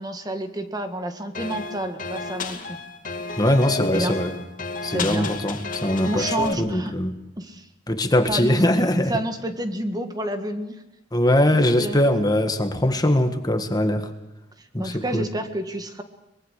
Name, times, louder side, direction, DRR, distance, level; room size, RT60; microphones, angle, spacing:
voice 1, 0.0-2.8 3.8-4.2 4.9-5.3 6.0-6.9 7.4-7.7 8.3-8.6 9.1-10.7 11.8-12.0 14.6-16.0, right 1 dB, 20° right, 7 dB, 1.7 m, -29 dB
sound 1, 1.3-6.5, left 3 dB, 50° left, 2.4 m, -31 dB
voice 2, 3.4-4.3 4.8-7.1 7.9-9.1 11.1-14.1 14.7-15.3, left 1 dB, 20° left, 7 dB, 1.6 m, -21 dB
23.5 x 21.5 x 6.6 m, 0.98 s
head